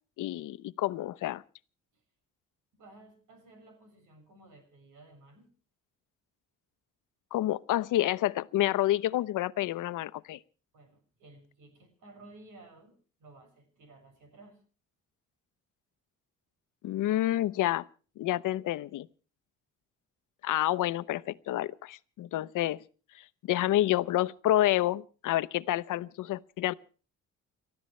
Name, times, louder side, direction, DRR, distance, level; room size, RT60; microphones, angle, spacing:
voice 1, 0.2-1.4 7.3-10.4 16.8-17.9 18.2-19.1 20.4-22.8 23.1-26.7, left 14 dB, 85° left, 0.8 m, -29 dB
voice 2, 2.7-5.5 10.7-14.6, right 2 dB, 85° right, 6.3 m, -55 dB
30.0 x 13.5 x 3.2 m
cardioid pair, 140°, 30 cm